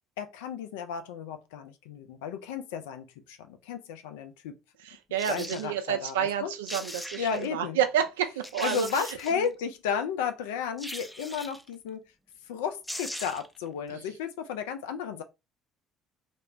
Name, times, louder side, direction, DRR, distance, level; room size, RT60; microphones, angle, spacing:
voice 1, 0.2-4.6 5.3-6.5 7.2-7.8 8.6-12.0 12.5-15.2, left 7 dB, 75° left, 0.3 m, -33 dB
voice 2, 4.8-9.0 9.4-9.5 13.9-14.1, right 9 dB, 80° right, 0.3 m, -30 dB
sound 1, 5.2-5.7 6.4-6.5 6.7-7.5 8.0-8.1 8.4-9.5 10.8-11.7 12.5-12.6 12.8-13.6 13.9-14.0, equal, 5° left, 0.4 m, -39 dB
3.0 x 2.1 x 2.4 m
figure-of-eight pair, 55°, 0 cm